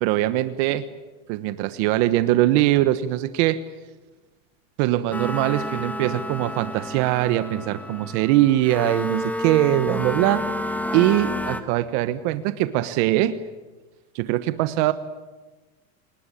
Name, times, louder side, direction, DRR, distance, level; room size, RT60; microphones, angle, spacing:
voice 1, 0.0-0.8 1.3-3.6 4.8-10.5 10.9-13.4 14.1-14.9, right 14 dB, 50° right, 12 dB, 1.3 m, -22 dB
sound 1, 5.1-11.6, left 1 dB, 5° left, 1.4 m, -30 dB
29.0 x 19.5 x 10.0 m, 1.2 s
supercardioid pair, 150°, 41 cm